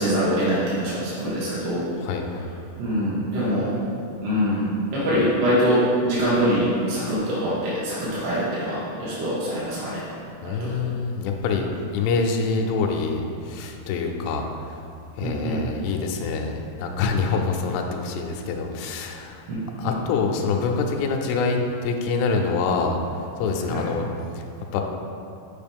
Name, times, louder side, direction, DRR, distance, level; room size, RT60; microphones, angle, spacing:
voice 1, 0.0-1.9 2.8-3.7 4.2-4.6 4.9-10.1 10.4-10.7 15.2-15.6 19.5-19.9 23.7-23.8, equal, 60° right, -9 dB, 2.7 m, -24 dB
voice 2, 2.0-2.5 10.4-14.5 15.2-19.4 19.8-23.0 23.4-24.1 24.4-24.5 24.7-24.8, left 4 dB, 80° left, 2 dB, 2.5 m, -25 dB
7.2 x 5.1 x 3.5 m, 2.6 s
omnidirectional pair, 4.8 m